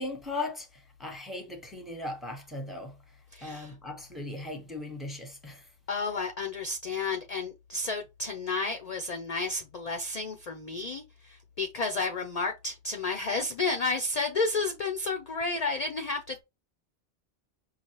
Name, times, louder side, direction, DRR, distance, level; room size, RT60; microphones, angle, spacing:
voice 1, 0.0-5.7, left 2 dB, ahead, 1.0 m, -38 dB
voice 2, 3.3-3.7 5.9-16.4, left 3 dB, 50° left, 0.6 m, -31 dB
5.5 x 2.5 x 3.0 m
omnidirectional pair, 1.1 m